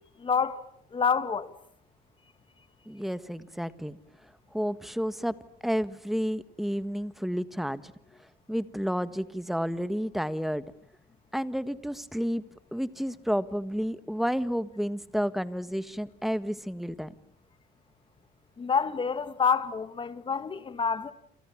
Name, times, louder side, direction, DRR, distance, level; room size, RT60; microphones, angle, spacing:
voice 1, 0.2-0.6 0.9-1.5 18.6-21.1, left 6 dB, 30° left, 2.5 m, -27 dB
voice 2, 2.9-4.0 4.5-5.3 5.6-7.9 8.5-10.6 11.3-12.4 12.7-17.1, equal, ahead, 1.6 m, -31 dB
28.5 x 28.0 x 7.4 m
cardioid pair, 110°, 17 cm